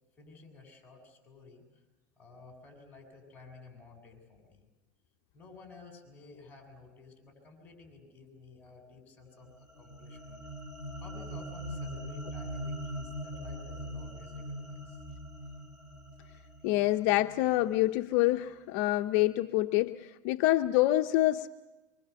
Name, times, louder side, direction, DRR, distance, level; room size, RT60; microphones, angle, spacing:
voice 1, 0.2-1.8 2.2-4.7 5.3-10.4 11.0-15.0, left 3 dB, 15° left, 4 dB, 7.8 m, -53 dB
sound 1, 9.4-17.9, equal, ahead, 6.7 m, -42 dB
voice 2, 16.6-21.5, left 16 dB, 60° left, 7 dB, 0.8 m, -26 dB
25.0 x 25.0 x 7.0 m, 1.1 s
supercardioid pair, 135°, 10 cm